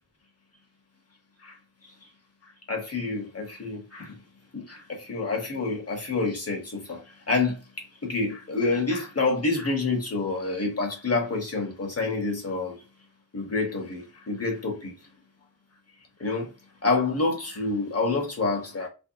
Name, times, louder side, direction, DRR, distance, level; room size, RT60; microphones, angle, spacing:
voice 1, 2.7-4.2 4.5-7.0 7.3-12.8 13.3-14.9 16.2-16.5 16.8-18.9, left 3 dB, 45° left, 1.0 m, -28 dB
2.6 x 2.0 x 2.6 m
wide cardioid pair, 55°, 34 cm